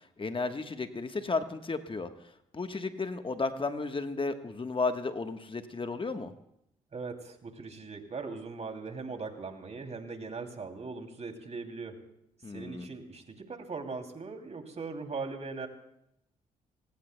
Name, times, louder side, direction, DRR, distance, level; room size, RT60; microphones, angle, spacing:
voice 1, 0.2-2.1 2.5-6.3 12.4-12.9, left 3 dB, 30° left, 8 dB, 1.3 m, -33 dB
voice 2, 6.9-12.0 12.5-15.7, right 4 dB, 40° right, 5 dB, 2.8 m, -40 dB
26.5 x 19.0 x 2.2 m, 0.78 s
hypercardioid pair, 45°, 17 cm